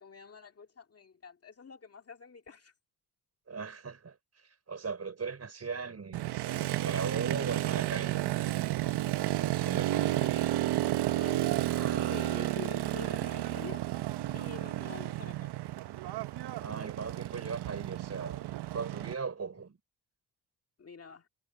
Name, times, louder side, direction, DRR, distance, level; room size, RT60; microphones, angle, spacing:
voice 1, 0.0-2.7 10.0-10.6 11.1-11.6 12.1-13.9 14.3-15.5 20.8-21.3, left 5 dB, 40° left, 2.1 m, -47 dB
voice 2, 3.5-4.2 4.7-6.2 6.5-8.2 9.4-10.1 11.7-12.5 16.6-18.5 18.7-19.8, right 5 dB, 40° right, 5.4 m, -38 dB
Motorcycle, 6.1-19.1, right 14 dB, 80° right, 0.9 m, -32 dB
cardioid pair, 90°, 39 cm